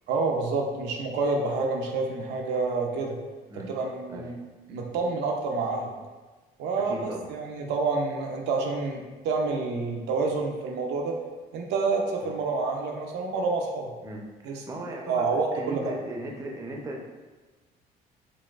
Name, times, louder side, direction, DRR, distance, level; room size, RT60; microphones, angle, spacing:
voice 1, 0.1-3.2 3.5-4.4 4.7-5.9 6.6-11.1 11.5-13.9 14.4-14.6 15.1-15.8, right 3 dB, 80° right, 1 dB, 0.5 m, -28 dB
voice 2, 6.9-7.3 12.2-12.3 14.0-17.0, right 1 dB, 20° right, -1 dB, 0.5 m, -37 dB
4.0 x 2.4 x 2.3 m, 1.3 s
cardioid pair, 110°, 17 cm